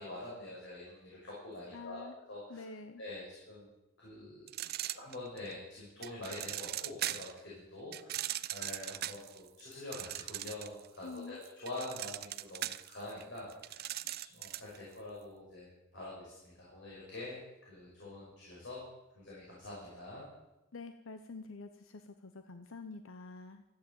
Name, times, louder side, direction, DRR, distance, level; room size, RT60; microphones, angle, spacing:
voice 1, 0.0-2.6 3.0-3.7 4.0-18.9 19.1-20.3, left 2 dB, 60° left, -6 dB, 6.0 m, -46 dB
voice 2, 1.7-2.2 2.5-3.0 11.0-11.4 20.7-23.6, left 3 dB, 75° left, 8 dB, 0.8 m, -47 dB
sound 1, 4.5-5.5 6.0-7.4 7.9-10.9 11.2-14.8, right 14 dB, 50° right, 0.5 m, -39 dB
14.0 x 10.5 x 7.8 m, 0.95 s
head